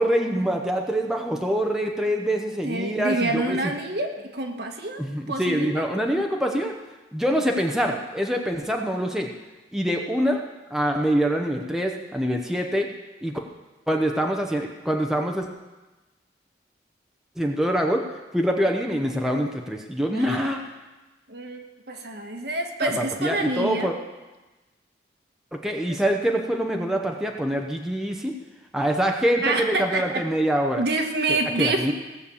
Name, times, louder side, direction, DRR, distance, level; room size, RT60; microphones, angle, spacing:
voice 1, 0.0-3.6 5.0-6.7 7.1-9.3 9.7-10.4 10.7-12.9 13.2-13.3 13.9-15.5 17.4-18.1 18.3-20.6 22.8-23.9 25.5-28.3 28.7-30.8 31.6-31.9, equal, 5° right, 1 dB, 0.8 m, -25 dB
voice 2, 2.6-5.0 5.3-6.0 20.1-20.6 21.3-23.9 25.9-26.0 29.4-30.2 30.8-31.9, right 2 dB, 65° right, 3 dB, 1.4 m, -27 dB
17.5 x 6.7 x 7.0 m, 1.1 s
head